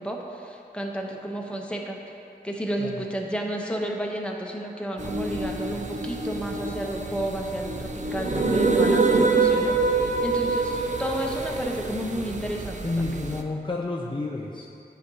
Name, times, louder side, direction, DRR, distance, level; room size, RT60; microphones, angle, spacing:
voice 1, 0.0-2.0 2.4-12.8 13.1-13.2, right 1 dB, 5° left, 0 dB, 0.9 m, -32 dB
sound 1, 5.0-13.4, right 3 dB, 45° right, 0.5 m, -26 dB
voice 2, 8.3-8.6 12.8-14.7, left 2 dB, 30° left, -1 dB, 0.5 m, -30 dB
9.6 x 5.0 x 2.8 m, 2.6 s
cardioid pair, 40°, 17 cm